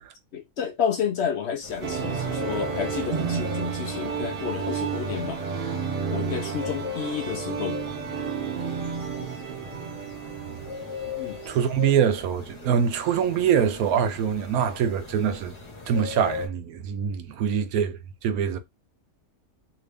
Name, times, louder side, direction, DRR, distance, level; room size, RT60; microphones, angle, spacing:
voice 1, 0.3-5.4 6.1-7.8 9.2-9.3 11.2-11.4, left 8 dB, 60° left, 0.7 m, -30 dB
sound 1, 1.6-16.5, left 5 dB, 25° left, 0.8 m, -40 dB
sound 2, 1.8-11.7, right 6 dB, 50° right, 0.7 m, -31 dB
voice 2, 11.5-15.5 15.9-18.6, right 8 dB, 85° right, 1.1 m, -24 dB
2.9 x 2.7 x 3.4 m
omnidirectional pair, 1.5 m